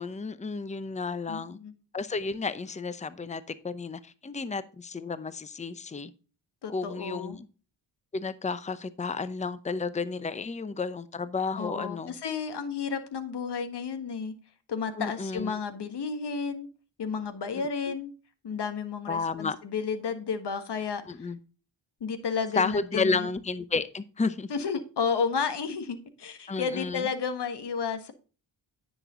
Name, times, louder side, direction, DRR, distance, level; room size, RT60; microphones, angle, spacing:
voice 1, 0.0-1.6 1.9-6.1 6.7-7.5 8.1-12.1 15.0-15.5 19.1-19.6 21.1-21.4 22.6-24.5 26.5-27.1, left 4 dB, 15° left, 0.7 m, -32 dB
voice 2, 1.3-1.7 6.6-7.4 11.6-14.3 14.7-16.7 17.0-18.1 18.4-21.3 22.0-23.3 24.5-28.1, left 5 dB, 65° left, 1.5 m, -32 dB
9.9 x 6.2 x 3.7 m
cardioid pair, 70°, 44 cm